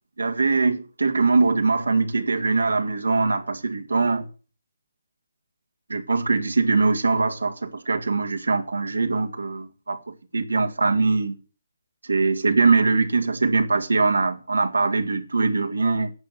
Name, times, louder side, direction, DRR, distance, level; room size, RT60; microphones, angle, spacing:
voice 1, 0.2-4.2 5.9-11.4 12.1-16.1, right 3 dB, 85° right, 2.1 m, -22 dB
11.0 x 7.4 x 8.0 m
figure-of-eight pair, 150°, 0 cm